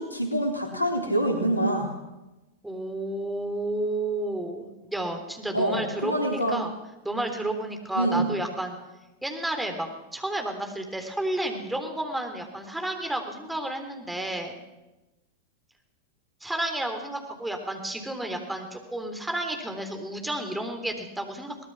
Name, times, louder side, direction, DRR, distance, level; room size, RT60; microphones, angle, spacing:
voice 1, 0.0-1.9 5.5-6.6 7.9-8.3, right 1 dB, 85° left, 3 dB, 3.8 m, -26 dB
voice 2, 2.6-6.7 7.0-8.8 9.2-14.5 16.4-21.7, right 1 dB, 5° right, 4 dB, 3.5 m, -31 dB
23.0 x 19.5 x 6.1 m, 1.0 s
figure-of-eight pair, 90°, 0 cm